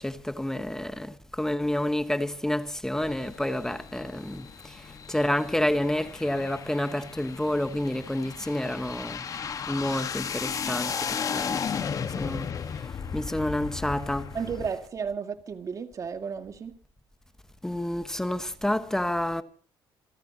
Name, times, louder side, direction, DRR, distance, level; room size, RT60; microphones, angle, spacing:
voice 1, 0.0-4.5 5.1-9.2 9.7-11.0 11.3-12.5 13.1-14.2 17.6-19.4, left 1 dB, 5° left, 1.3 m, -29 dB
sound 1, 3.0-14.7, left 7 dB, 40° left, 1.6 m, -35 dB
voice 2, 14.3-16.8, right 6 dB, 40° right, 2.2 m, -33 dB
28.0 x 15.0 x 3.0 m
cardioid pair, 115°, 9 cm